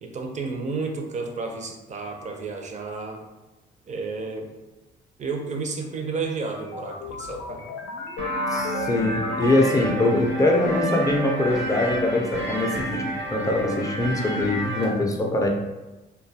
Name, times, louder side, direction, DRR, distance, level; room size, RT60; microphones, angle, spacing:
voice 1, 0.0-3.2 3.9-4.5 5.2-7.7, right 4 dB, 35° right, 3 dB, 0.5 m, -31 dB
sound 1, 6.2-10.4, left 4 dB, 75° left, 0.4 m, -36 dB
sound 2, 8.2-14.8, right 1 dB, 85° right, 1.1 m, -29 dB
voice 2, 8.5-13.0 13.3-15.5, left 2 dB, 15° left, 1 dB, 0.4 m, -23 dB
2.6 x 2.2 x 2.6 m, 1.1 s
cardioid pair, 90°, 20 cm